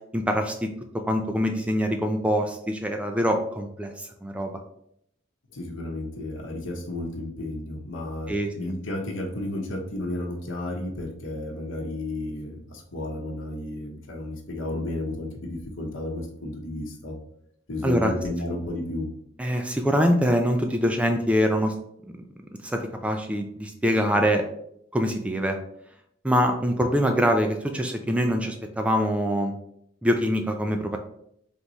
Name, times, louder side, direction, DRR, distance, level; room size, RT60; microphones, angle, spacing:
voice 1, 0.1-0.7 1.1-4.6 8.3-8.5 17.8-18.1 19.4-21.7 22.1-22.2 22.6-24.4 24.9-25.6 26.2-29.5 30.0-31.0, equal, 5° right, 4 dB, 0.3 m, -24 dB
voice 2, 5.5-17.2 17.7-19.1, left 1 dB, 80° left, 2 dB, 0.9 m, -32 dB
3.5 x 3.0 x 4.0 m, 0.72 s
head